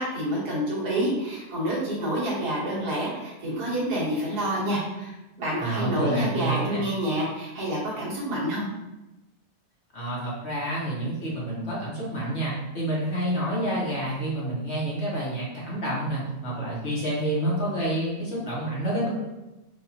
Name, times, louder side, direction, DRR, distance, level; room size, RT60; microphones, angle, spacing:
voice 1, 0.0-8.7, right 1 dB, 80° right, -6 dB, 1.7 m, -28 dB
voice 2, 5.6-6.8 9.9-19.1, right 1 dB, 50° left, -5 dB, 1.1 m, -28 dB
4.8 x 2.5 x 2.7 m, 1.0 s
omnidirectional pair, 1.7 m